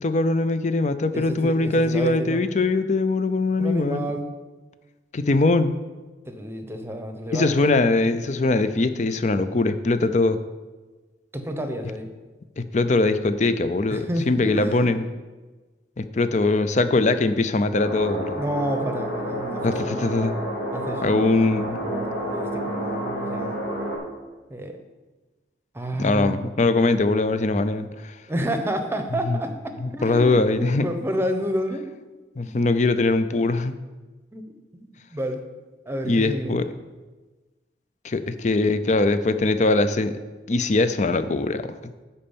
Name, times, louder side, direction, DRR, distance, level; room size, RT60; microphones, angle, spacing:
voice 1, 0.0-4.1 5.1-5.8 7.3-10.4 12.6-15.0 16.0-18.4 19.6-20.4 21.0-21.8 25.9-28.1 29.3-29.4 29.8-30.8 32.4-33.7 36.0-36.6 38.0-40.1 40.5-41.8, left 2 dB, 40° left, 11 dB, 0.5 m, -22 dB
voice 2, 1.1-2.4 3.6-4.3 6.2-7.7 11.3-12.1 13.9-14.9 18.4-20.1 20.7-21.5 21.8-23.6 24.5-24.8 25.7-26.4 28.3-29.5 29.9-31.9 32.4-32.5 34.3-34.4 34.7-35.4 35.9-36.6, equal, 15° right, 6 dB, 0.8 m, -29 dB
sound 1, 17.7-24.0, equal, 70° left, 2.8 m, -29 dB
11.0 x 4.3 x 7.1 m, 1.3 s
head